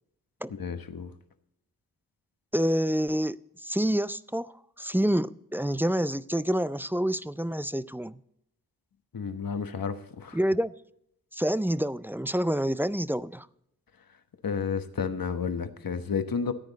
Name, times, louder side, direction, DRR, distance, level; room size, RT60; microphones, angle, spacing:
voice 1, 0.5-1.1 9.1-10.4 14.4-16.5, left 6 dB, 60° left, 1.1 m, -31 dB
voice 2, 2.5-4.5 4.8-8.2 10.3-10.7 11.3-13.5, equal, 5° right, 0.3 m, -27 dB
14.0 x 9.6 x 4.0 m
wide cardioid pair, 65°, 38 cm